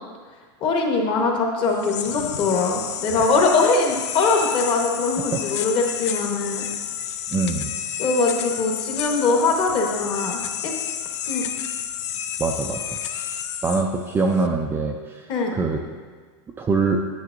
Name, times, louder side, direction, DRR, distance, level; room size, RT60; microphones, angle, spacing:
voice 1, 0.6-6.7 8.0-10.7 11.3-11.5 15.3-15.5, left 3 dB, 35° left, 1 dB, 1.1 m, -22 dB
sound 1, 1.6-14.5, left 9 dB, 75° left, 0.5 m, -30 dB
voice 2, 7.3-7.7 12.4-13.0 13.6-15.3 15.5-15.8 16.6-17.0, right 4 dB, 15° right, 2 dB, 0.3 m, -23 dB
9.3 x 7.8 x 2.5 m, 1.5 s
supercardioid pair, 145°, 15 cm